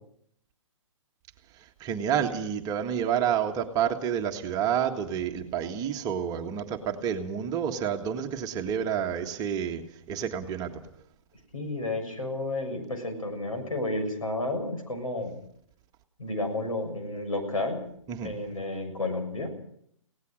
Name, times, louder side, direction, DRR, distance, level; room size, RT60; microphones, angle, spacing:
voice 1, 1.8-10.8 18.1-18.3, right 8 dB, 20° right, 4 dB, 1.7 m, -29 dB
voice 2, 11.5-15.3 16.2-17.8 18.2-19.5, left 2 dB, 90° left, 4 dB, 6.9 m, -31 dB
24.0 x 17.5 x 6.5 m, 0.69 s
hypercardioid pair, 135°, 17 cm